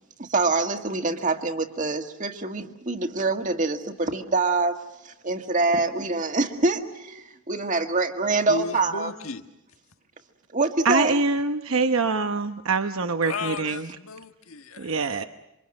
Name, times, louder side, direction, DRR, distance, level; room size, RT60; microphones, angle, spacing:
voice 1, 0.2-9.1 10.5-11.2, right 3 dB, 35° right, 5 dB, 1.8 m, -25 dB
voice 2, 8.5-9.4 13.2-15.3, left 3 dB, 85° left, 7 dB, 1.5 m, -35 dB
voice 3, 10.8-13.9 14.8-15.2, right 3 dB, 75° right, 8 dB, 1.0 m, -24 dB
28.0 x 26.0 x 6.5 m, 0.86 s
head